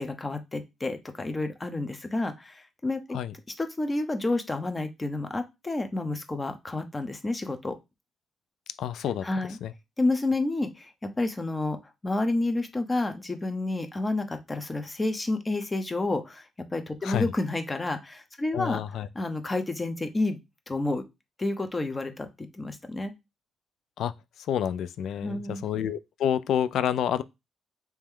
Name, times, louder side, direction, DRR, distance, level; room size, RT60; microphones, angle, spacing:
voice 1, 0.0-3.2 3.5-7.7 9.2-9.6 10.0-11.8 12.0-20.4 20.7-21.0 21.4-23.1 25.2-25.6, left 2 dB, 20° left, 0.7 m, -30 dB
voice 2, 8.8-9.2 9.6-9.7 17.0-17.3 18.5-19.1 24.0-24.1 24.5-27.2, left 9 dB, 75° left, 0.3 m, -28 dB
3.3 x 2.9 x 3.6 m
cardioid pair, 90°, 0 cm